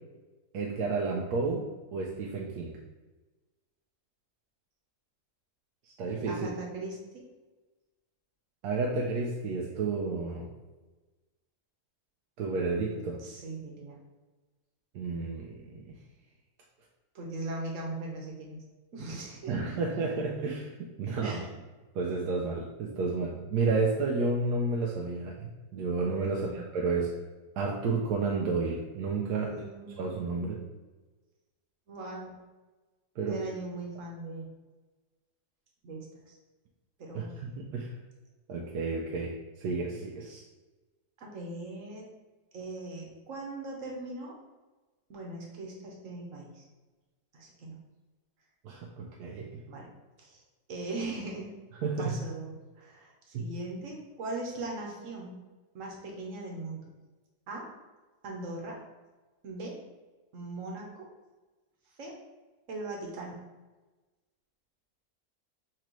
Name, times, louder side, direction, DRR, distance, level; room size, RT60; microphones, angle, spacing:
voice 1, 0.5-1.7 1.9-2.8 6.0-6.5 8.6-10.4 12.4-13.2 14.9-15.9 19.5-21.4 21.9-27.1 27.6-29.5 30.0-30.6 33.2-33.4 37.1-37.9 38.5-39.3 39.6-40.4 48.6-49.5 51.8-52.1 53.3-53.5, right 3 dB, 90° right, -2 dB, 1.1 m, -31 dB
voice 2, 6.3-7.2 10.3-10.4 12.9-14.0 17.1-18.6 18.9-19.8 21.2-21.5 26.2-26.6 29.4-30.3 31.9-32.4 33.2-34.5 35.8-36.4 37.0-37.3 41.2-42.1 42.5-44.3 45.1-46.6 47.3-47.8 49.7-49.9 50.2-50.4 50.7-51.5 52.0-55.4 55.7-56.9 57.5-57.6 58.2-58.8 59.4-59.7 60.3-61.1 62.0-62.1 62.7-63.4, right 2 dB, 60° right, -1 dB, 1.2 m, -40 dB
5.9 x 2.9 x 3.0 m, 1.2 s
omnidirectional pair, 1.6 m